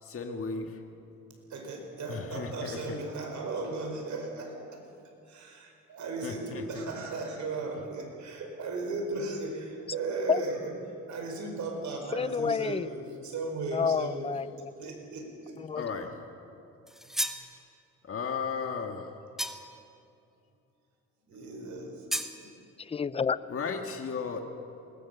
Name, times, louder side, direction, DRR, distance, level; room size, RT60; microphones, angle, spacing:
voice 1, 0.0-0.8 2.1-3.0 6.2-6.8 15.8-16.1 18.0-19.1 23.5-24.4, left 5 dB, 45° left, 4 dB, 1.8 m, -35 dB
voice 2, 1.5-4.8 5.3-10.7 11.1-14.3 14.8-15.6 21.3-21.9 22.4-22.5, right 3 dB, 70° right, 3 dB, 5.1 m, -36 dB
voice 3, 12.1-13.0 13.7-14.7 15.6-15.8 22.8-23.4, left 6 dB, 20° left, 17 dB, 0.5 m, -29 dB
sound 1, 16.9-17.5 19.4-19.8 22.1-22.4, equal, ahead, 1.4 m, -33 dB
21.0 x 19.0 x 7.1 m, 2.7 s
cardioid pair, 90°, 30 cm